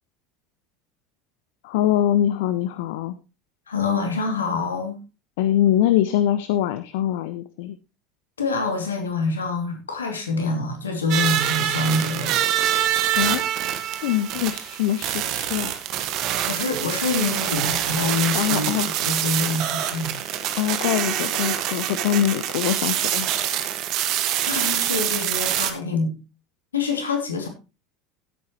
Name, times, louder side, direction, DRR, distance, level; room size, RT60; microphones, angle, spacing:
voice 1, 1.6-3.1 5.4-7.8 13.2-13.4 14.0-15.7 18.3-18.9 20.6-23.3, left 11 dB, 60° left, 14 dB, 0.7 m, -23 dB
voice 2, 3.7-5.0 8.4-12.4 16.5-20.1 24.4-26.1 26.7-27.5, left 3 dB, 75° left, 5 dB, 2.6 m, -26 dB
sound 1, 11.1-25.7, right 11 dB, 50° right, 1.6 m, -25 dB
15.5 x 8.6 x 3.1 m, 0.29 s
figure-of-eight pair, 70°, 0 cm